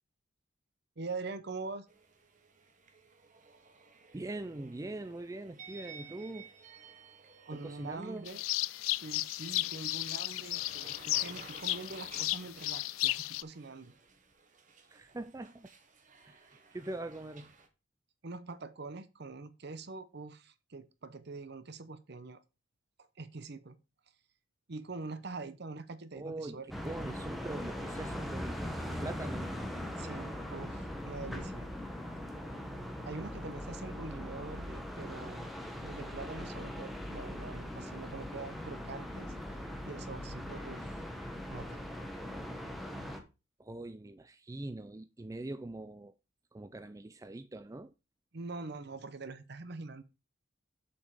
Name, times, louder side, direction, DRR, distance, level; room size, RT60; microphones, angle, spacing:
voice 1, 1.0-1.9 7.4-8.4 9.0-13.9 18.2-22.4 23.0-23.8 24.7-26.7 30.0-31.7 33.0-35.5 35.8-39.4 39.9-41.1 41.5-41.8 48.3-50.0, right 3 dB, 55° right, 0.8 m, -44 dB
sound 1, 1.9-17.7, right 4 dB, 40° right, 1.1 m, -55 dB
voice 2, 4.1-6.5 7.5-8.3 14.9-15.7 16.2-17.5 26.2-29.6 43.6-46.1 46.5-47.9, right 2 dB, 15° right, 0.4 m, -43 dB
sound 2, 8.3-13.4, left 18 dB, 85° left, 0.3 m, -34 dB
sound 3, 26.7-43.2, left 1 dB, ahead, 1.1 m, -40 dB
7.0 x 5.4 x 4.9 m
head